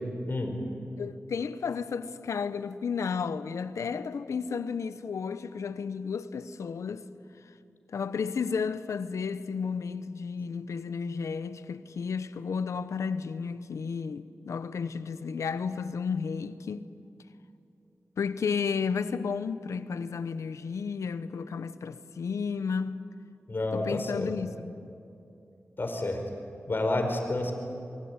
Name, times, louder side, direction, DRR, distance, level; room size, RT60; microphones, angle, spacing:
voice 1, 1.0-7.1 7.9-16.9 18.2-23.0 23.7-24.9, left 5 dB, 90° left, 0.9 m, -32 dB
voice 2, 23.5-24.3 25.8-26.2 26.7-27.5, left 2 dB, 45° left, 4.7 m, -29 dB
23.5 x 23.0 x 9.7 m
wide cardioid pair, 70°, 5 cm